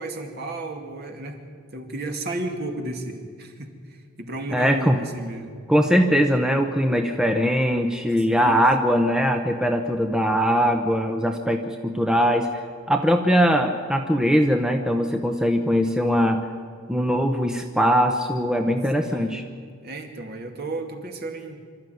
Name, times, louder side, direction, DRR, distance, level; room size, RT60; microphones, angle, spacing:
voice 1, 0.0-1.4 1.7-5.5 8.3-8.6 19.0-19.5 19.8-21.6, right 2 dB, 50° right, 4 dB, 2.4 m, -33 dB
voice 2, 4.5-5.0 5.7-12.5 12.9-16.4 16.9-19.4, equal, 5° right, 4 dB, 0.9 m, -21 dB
25.5 x 13.0 x 9.3 m, 2.1 s
head